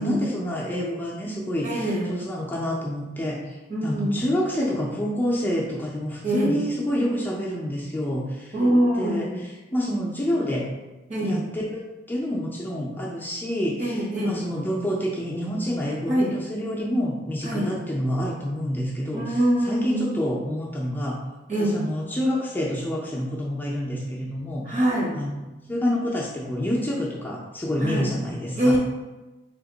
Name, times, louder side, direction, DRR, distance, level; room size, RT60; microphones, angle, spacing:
voice 1, 0.0-3.6 3.8-8.5 9.0-9.3 9.7-10.7 11.2-19.4 19.7-21.2 21.6-24.8 25.1-28.8, equal, 10° left, -4 dB, 0.4 m, -28 dB
voice 2, 1.6-2.1 3.7-4.2 6.2-6.7 8.5-9.4 11.1-11.4 13.8-14.4 16.1-16.3 17.4-17.7 19.1-20.1 21.5-21.8 24.6-25.1 27.8-28.1 28.6-28.8, right 1 dB, 45° right, -3 dB, 1.0 m, -24 dB
2.9 x 2.8 x 3.8 m, 1.1 s
head